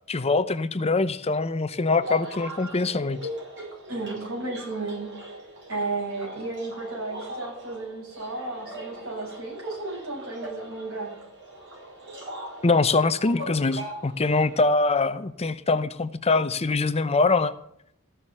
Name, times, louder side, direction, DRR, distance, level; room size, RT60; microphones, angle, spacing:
voice 1, 0.1-3.2 12.6-17.5, left 3 dB, 30° left, 13 dB, 0.7 m, -23 dB
sound 1, 2.0-14.6, equal, 60° right, 5.8 m, -40 dB
voice 2, 3.9-5.1 5.7-11.1, right 2 dB, 75° right, -2 dB, 8.0 m, -33 dB
14.5 x 6.8 x 9.8 m, 0.71 s
head